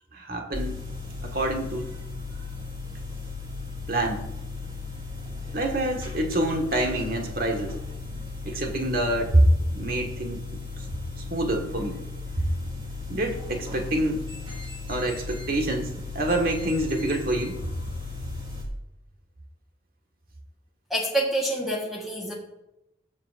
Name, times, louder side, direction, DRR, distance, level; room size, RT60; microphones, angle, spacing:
voice 1, 0.1-0.8 1.2-1.9 3.9-4.2 5.5-7.8 8.4-9.4 9.7-10.4 11.3-12.0 12.4-12.5 13.1-14.2 14.9-17.6, right 1 dB, 50° right, 2 dB, 1.7 m, -26 dB
sound 1, 0.5-18.6, left 3 dB, 25° right, 2.2 m, -36 dB
voice 2, 20.9-22.3, right 1 dB, ahead, -3 dB, 1.4 m, -27 dB
19.0 x 7.7 x 2.6 m, 0.89 s
head